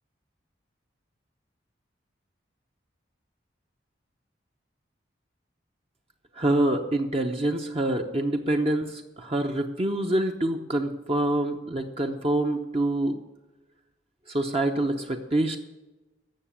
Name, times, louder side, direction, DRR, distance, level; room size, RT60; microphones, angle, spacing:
voice 1, 6.3-13.2 14.3-15.6, right 1 dB, 30° right, 3 dB, 0.8 m, -26 dB
14.0 x 6.8 x 8.8 m, 1.1 s
head